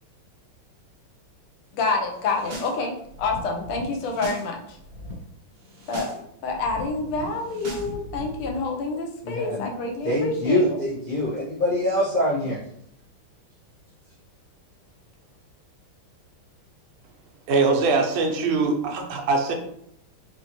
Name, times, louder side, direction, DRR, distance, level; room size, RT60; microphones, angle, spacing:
voice 1, 1.7-4.8 5.9-6.1 6.4-10.8, left 3 dB, 85° left, 2 dB, 1.6 m, -28 dB
sound 1, 2.2-2.7 3.0-4.5 4.7-5.1 5.6-6.2 6.4-8.5, equal, 60° right, 1.6 m, -38 dB
voice 2, 9.2-9.7 10.0-12.6, left 1 dB, 40° left, -10 dB, 0.6 m, -24 dB
voice 3, 17.5-19.5, right 3 dB, 75° right, 3 dB, 1.5 m, -22 dB
4.5 x 2.9 x 2.8 m, 0.72 s
omnidirectional pair, 2.3 m